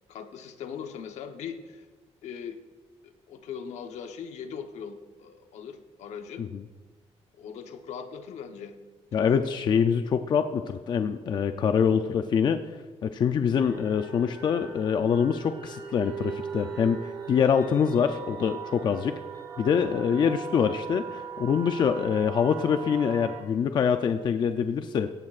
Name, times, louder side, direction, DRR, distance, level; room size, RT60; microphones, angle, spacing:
voice 1, 0.1-1.9 2.2-2.6 3.0-6.5 7.4-8.8 9.2-9.5, left 7 dB, 75° left, 6 dB, 1.1 m, -40 dB
voice 2, 9.1-12.6 13.0-17.0 17.3-19.2 19.6-25.1, left 7 dB, 40° left, 8 dB, 0.5 m, -25 dB
sound 1, 13.6-23.4, right 6 dB, 35° right, 2.4 m, -39 dB
17.0 x 16.5 x 2.5 m, 1.4 s
cardioid pair, 175°, 12 cm